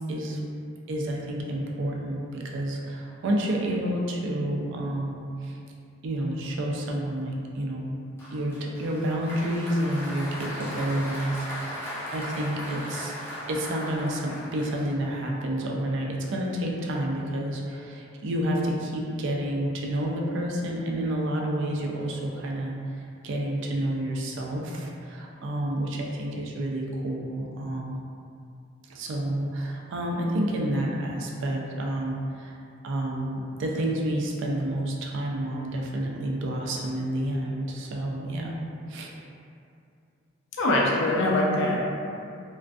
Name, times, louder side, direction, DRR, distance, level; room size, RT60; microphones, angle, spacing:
voice 1, 0.1-0.4 0.9-5.6 6.0-7.9 8.3-13.2 13.5-28.0 28.9-32.6 32.8-38.6 38.9-39.1, right 1 dB, 65° right, -1 dB, 0.4 m, -29 dB
Applause, 8.2-15.3, equal, 10° left, 0.5 m, -38 dB
voice 2, 40.6-41.8, left 1 dB, 65° left, -3 dB, 0.4 m, -23 dB
2.3 x 2.2 x 2.5 m, 2.5 s
head